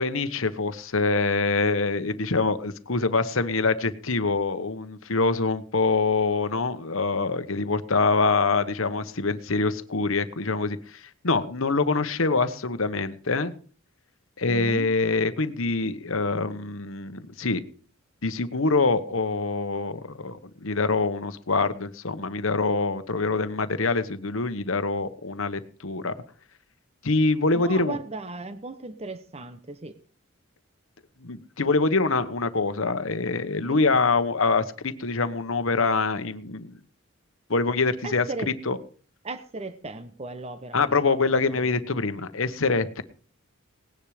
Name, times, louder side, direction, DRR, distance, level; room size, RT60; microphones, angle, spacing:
voice 1, 0.0-13.5 14.4-17.6 18.2-26.1 27.0-28.0 31.2-36.7 37.5-38.2 38.7-38.8 40.7-43.0, left 3 dB, 65° left, 11 dB, 1.1 m, -25 dB
voice 2, 14.5-14.9 27.5-30.0 33.6-33.9 38.0-38.5 39.2-41.7, right 3 dB, 30° right, 10 dB, 0.9 m, -37 dB
18.5 x 10.5 x 5.0 m, 0.43 s
head